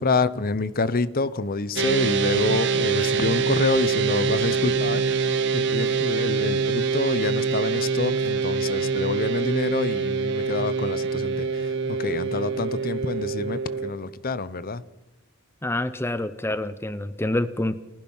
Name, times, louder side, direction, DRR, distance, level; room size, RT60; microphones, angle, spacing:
voice 1, 0.0-11.5 12.0-14.8, left 3 dB, 40° left, 16 dB, 0.8 m, -27 dB
sound 1, 1.8-13.9, right 5 dB, 55° right, 1.5 m, -25 dB
voice 2, 15.6-17.8, left 1 dB, 10° left, 13 dB, 0.6 m, -27 dB
30.0 x 15.5 x 5.6 m, 1.1 s
head